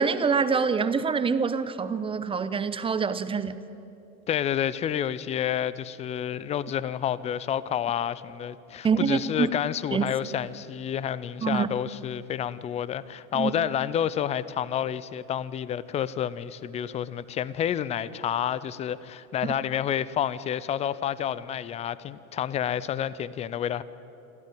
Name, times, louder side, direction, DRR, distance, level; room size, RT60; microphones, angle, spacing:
voice 1, 0.0-3.6 8.8-9.5 9.9-10.0 11.4-11.7 13.3-13.5 19.4-19.5, right 5 dB, 10° right, 0.8 m, -25 dB
voice 2, 4.3-23.8, left 9 dB, 15° left, 0.4 m, -29 dB
27.5 x 13.0 x 9.1 m
hypercardioid pair, 100°, 43 cm